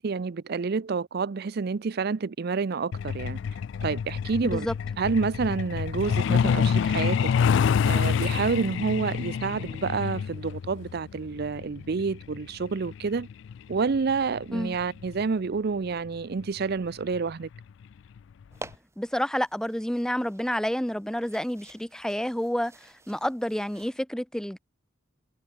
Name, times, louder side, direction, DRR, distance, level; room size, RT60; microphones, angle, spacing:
voice 1, 0.0-3.4 3.8-4.7 5.0-7.3 7.9-13.3 13.7-17.5, right 4 dB, 55° right, 0.5 m, -28 dB
Truck, 2.9-15.2 16.4-16.6 17.0-17.2 17.6-17.8 18.2-18.3 18.7-18.8, left 7 dB, 65° left, 0.3 m, -27 dB
voice 2, 4.4-4.7 14.5-14.8 19.0-24.6, equal, 5° left, 0.8 m, -29 dB
sound 1, 18.5-24.0, right 2 dB, 15° right, 2.8 m, -49 dB
head